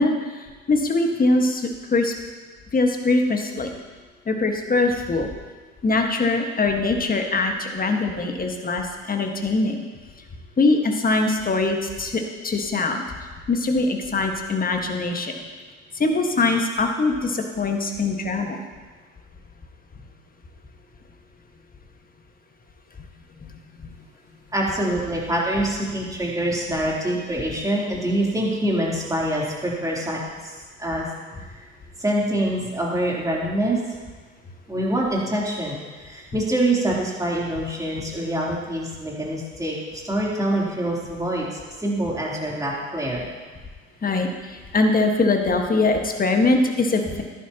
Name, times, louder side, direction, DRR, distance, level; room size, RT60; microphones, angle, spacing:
voice 1, 0.0-2.1 2.7-3.8 4.3-5.3 5.8-9.8 10.6-13.0 13.5-15.3 15.9-18.6 44.0-47.2, left 3 dB, 20° left, 3 dB, 1.6 m, -22 dB
voice 2, 24.5-30.5 30.8-31.0 31.4-31.6 32.0-33.8 34.7-43.3, right 1 dB, 10° right, -4 dB, 3.4 m, -25 dB
14.5 x 11.0 x 3.0 m, 1.4 s
hypercardioid pair, 70°, 40 cm